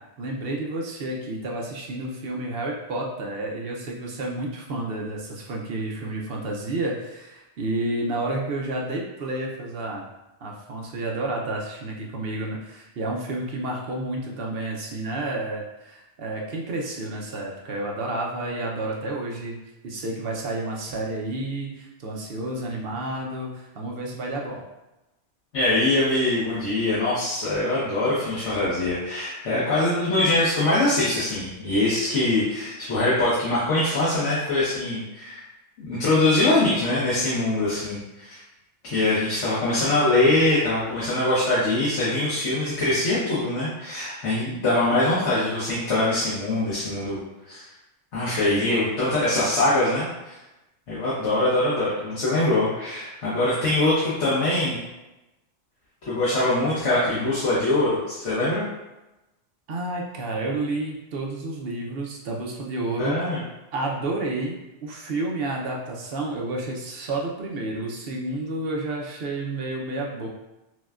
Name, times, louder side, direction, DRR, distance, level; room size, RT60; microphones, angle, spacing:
voice 1, 0.2-10.0 10.4-19.6 19.8-24.6 59.7-63.3 63.7-70.3, right 2 dB, 60° right, -1 dB, 0.8 m, -30 dB
voice 2, 25.5-35.4 35.8-38.4 38.8-47.2 47.5-47.6 48.1-50.3 50.9-54.8 56.1-58.6 63.0-63.4, left 2 dB, 80° left, -10 dB, 1.3 m, -23 dB
6.0 x 2.2 x 2.4 m, 1.0 s
omnidirectional pair, 1.2 m